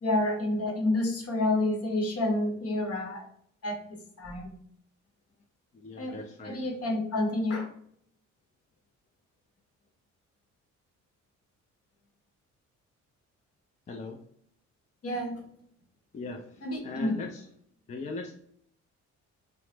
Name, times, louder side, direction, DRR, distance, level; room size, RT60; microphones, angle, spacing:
voice 1, 0.0-3.3 3.6-4.5 6.0-6.2 6.4-7.7 15.0-15.4 16.6-17.2, left 1 dB, 50° left, 3 dB, 0.9 m, -29 dB
voice 2, 5.7-6.7 13.9-14.2 16.1-17.5 17.9-18.4, left 3 dB, 25° left, 2 dB, 0.4 m, -39 dB
2.9 x 2.1 x 3.2 m, 0.67 s
cardioid pair, 90°, 30 cm